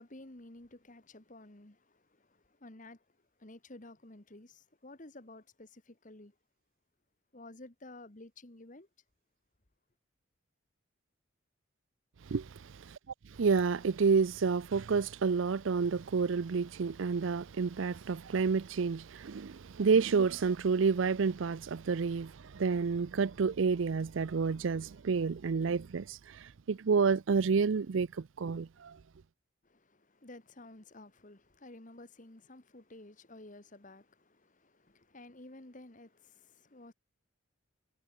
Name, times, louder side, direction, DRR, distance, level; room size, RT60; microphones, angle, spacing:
voice 1, 0.0-3.0 3.4-6.3 7.3-8.9 29.6-36.9, left 2 dB, 40° left, 1.7 m, -53 dB
voice 2, 13.4-26.2 26.7-28.9, right 5 dB, 70° right, 0.5 m, -29 dB
head